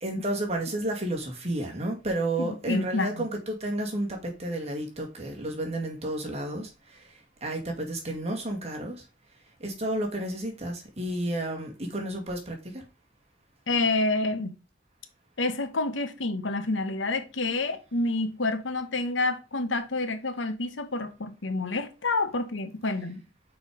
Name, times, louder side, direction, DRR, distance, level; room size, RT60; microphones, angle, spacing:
voice 1, 0.0-6.7 7.4-9.0 9.6-12.8, right 1 dB, 35° right, 2.0 m, -31 dB
voice 2, 2.4-3.2 13.7-14.6 15.4-23.2, left 2 dB, 85° left, 1.1 m, -28 dB
5.9 x 4.8 x 5.1 m
head